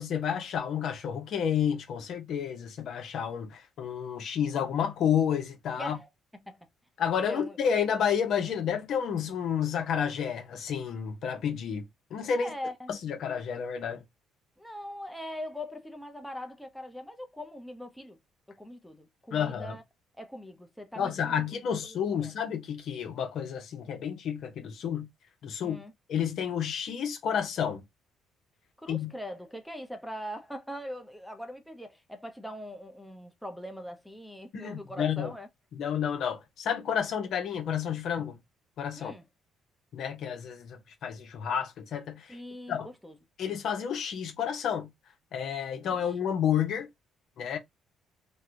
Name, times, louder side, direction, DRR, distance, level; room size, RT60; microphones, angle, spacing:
voice 1, 0.0-6.0 7.0-12.5 12.9-14.0 19.3-19.8 21.0-25.1 25.4-25.8 26.1-27.8 28.9-29.1 34.5-35.3 35.7-38.4 38.8-39.1 39.9-42.4 42.7-42.9 43.4-44.9 45.3-46.9 47.4-47.6, left 8 dB, 65° left, 0.9 m, -30 dB
voice 2, 5.8-6.1 6.4-6.6 7.2-7.6 12.4-12.9 14.6-18.2 18.5-19.8 20.2-22.3 25.6-25.9 28.8-35.5 39.0-39.2 42.3-43.1, equal, ahead, 0.7 m, -41 dB
3.3 x 2.3 x 2.7 m
cardioid pair, 90°, 0 cm